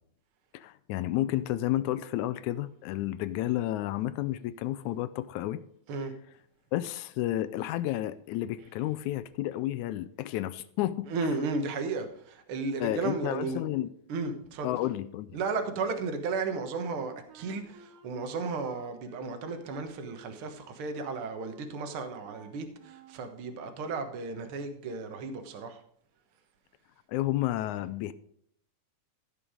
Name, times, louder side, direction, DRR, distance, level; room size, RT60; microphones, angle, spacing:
voice 1, 0.5-5.6 6.7-11.1 12.8-13.9 14.6-15.4 27.1-28.1, left 14 dB, 80° left, 1.9 m, -31 dB
voice 2, 11.1-13.6 14.1-14.7 15.3-25.8, right 4 dB, 55° right, 1.9 m, -34 dB
Wind instrument woodwind instrument, 16.5-23.3, right 4 dB, 80° right, 2.9 m, -55 dB
15.0 x 5.4 x 5.0 m
omnidirectional pair, 3.5 m